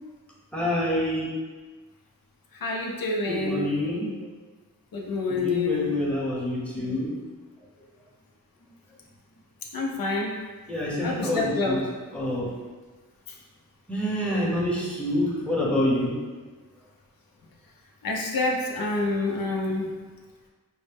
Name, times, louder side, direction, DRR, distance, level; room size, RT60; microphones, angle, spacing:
voice 1, 0.5-1.2 3.3-4.1 5.3-7.1 10.7-11.8 12.1-12.5 13.9-16.1, left 1 dB, 5° left, -5 dB, 0.8 m, -27 dB
voice 2, 2.6-3.7 4.9-5.9 9.7-10.4 11.0-11.8 18.0-19.9, left 3 dB, 75° left, -1 dB, 0.6 m, -27 dB
4.3 x 2.1 x 3.4 m, 1.3 s
wide cardioid pair, 100°, 35 cm